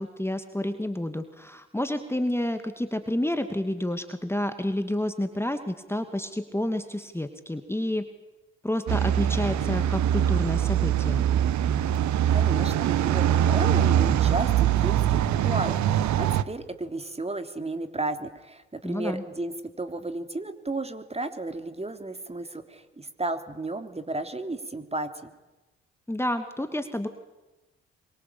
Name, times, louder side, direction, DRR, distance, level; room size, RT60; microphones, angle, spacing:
voice 1, 0.0-8.1 8.6-11.3 18.8-19.2 26.1-27.1, left 1 dB, 5° left, 8 dB, 2.5 m, -29 dB
sound 1, 8.9-16.4, right 10 dB, 60° right, 1.3 m, -23 dB
voice 2, 12.3-25.3, right 2 dB, 20° right, 8 dB, 3.3 m, -33 dB
27.0 x 24.0 x 8.7 m, 1.1 s
hypercardioid pair, 45°, 33 cm